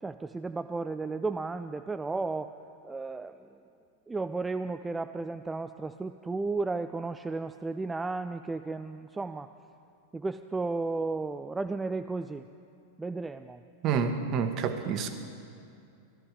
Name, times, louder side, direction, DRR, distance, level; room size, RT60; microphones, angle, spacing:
voice 1, 0.0-2.5 2.8-3.6 4.1-9.5 10.1-12.5 13.0-13.6, right 3 dB, 10° right, 9 dB, 0.3 m, -34 dB
voice 2, 13.8-15.1, right 6 dB, 35° right, 8 dB, 1.1 m, -28 dB
17.0 x 12.5 x 5.0 m, 2.5 s
figure-of-eight pair, 90°, 0 cm